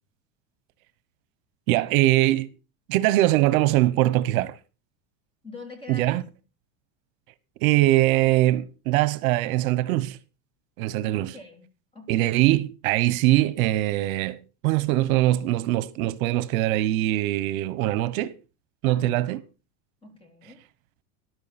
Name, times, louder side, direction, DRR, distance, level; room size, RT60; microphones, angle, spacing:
voice 1, 1.7-2.5 2.9-4.5 5.9-6.2 7.6-10.2 10.8-11.3 12.1-18.3 18.8-19.4, right 16 dB, 75° right, 1.1 m, -22 dB
voice 2, 5.4-6.2 11.1-11.7 11.9-12.4 18.8-19.4 20.0-20.6, left 3 dB, 10° left, 3.2 m, -45 dB
14.5 x 11.0 x 4.2 m
cardioid pair, 165°, 43 cm